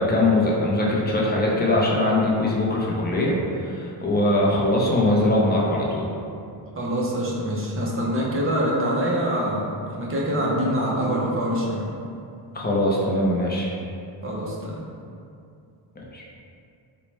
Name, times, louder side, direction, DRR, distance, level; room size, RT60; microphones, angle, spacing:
voice 1, 0.0-6.1 12.5-13.7 16.1-16.2, left 1 dB, 20° left, -4 dB, 0.5 m, -21 dB
voice 2, 6.7-11.9 14.2-14.8, equal, 30° right, -4 dB, 0.6 m, -25 dB
4.1 x 2.1 x 3.1 m, 2.5 s
cardioid pair, 125°, 46 cm